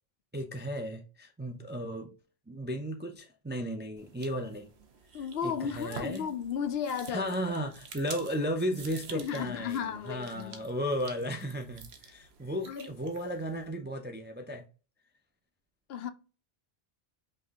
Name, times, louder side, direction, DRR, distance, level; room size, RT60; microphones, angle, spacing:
voice 1, 0.3-2.1 2.5-4.7 5.2-6.3 7.1-14.7, equal, 15° right, 0.4 m, -35 dB
sound 1, 4.0-13.7, right 6 dB, 80° right, 1.0 m, -49 dB
voice 2, 5.1-7.3 9.1-10.6 12.7-12.9 15.9-16.1, left 7 dB, 75° left, 0.8 m, -34 dB
5.4 x 2.6 x 3.6 m
omnidirectional pair, 1.1 m